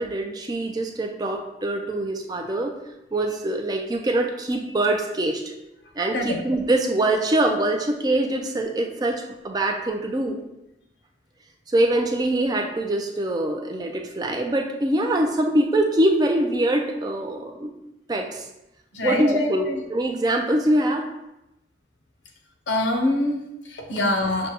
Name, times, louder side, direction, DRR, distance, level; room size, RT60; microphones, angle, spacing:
voice 1, 0.0-2.7 3.1-5.5 6.0-10.4 11.7-17.7 18.1-18.5 19.0-21.0, right 1 dB, 20° right, 3 dB, 0.3 m, -23 dB
voice 2, 18.9-19.8 22.7-24.5, left 1 dB, 85° left, 3 dB, 0.7 m, -25 dB
6.2 x 2.2 x 2.8 m, 0.89 s
head